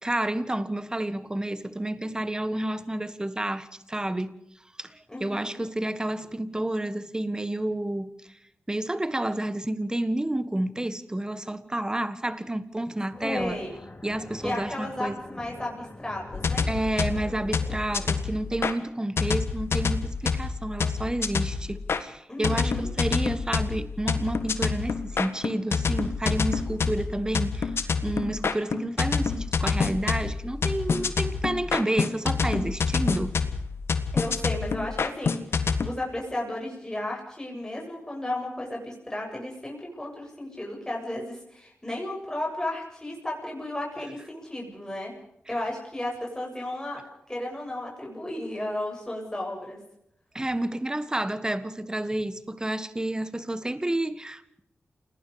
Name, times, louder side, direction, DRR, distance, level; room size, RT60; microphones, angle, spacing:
voice 1, 0.0-4.3 4.8-8.1 8.7-13.6 14.0-15.1 16.7-27.7 28.0-33.3 50.3-54.6, right 1 dB, 15° right, 1.6 m, -30 dB
voice 2, 5.1-5.6 13.2-13.7 14.4-16.7 22.3-22.9 34.1-45.1 45.5-47.0 47.3-49.8, left 1 dB, 15° left, 7.7 m, -34 dB
sound 1, 13.1-18.2, left 2 dB, 40° left, 4.6 m, -44 dB
sound 2, 16.3-18.7 19.2-22.0 22.4-35.9, left 5 dB, 70° left, 1.6 m, -27 dB
28.5 x 19.5 x 5.1 m
cardioid pair, 60°, 4 cm